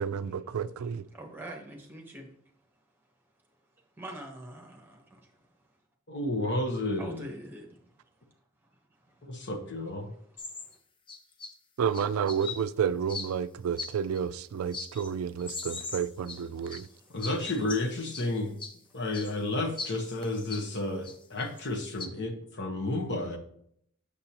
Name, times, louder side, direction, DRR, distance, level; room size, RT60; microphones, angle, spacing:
voice 1, 0.0-1.0 11.8-16.9, right 7 dB, 85° right, 0.3 m, -30 dB
voice 2, 1.1-2.2 4.0-5.0 7.0-7.7, right 1 dB, 10° right, 1.3 m, -43 dB
voice 3, 6.1-7.2 9.2-10.1 17.1-18.6 18.9-23.4, left 2 dB, 55° left, 1.1 m, -31 dB
sound 1, 10.4-10.7 11.1-11.5 11.9-12.6 13.1-13.3 13.8-14.2 14.7-15.1 15.4-16.9 17.2-18.3 18.6-18.7 19.1-19.3 19.8-20.6 21.0-21.6 22.0-22.1, left 4 dB, 25° left, 0.6 m, -39 dB
6.8 x 6.6 x 2.9 m
head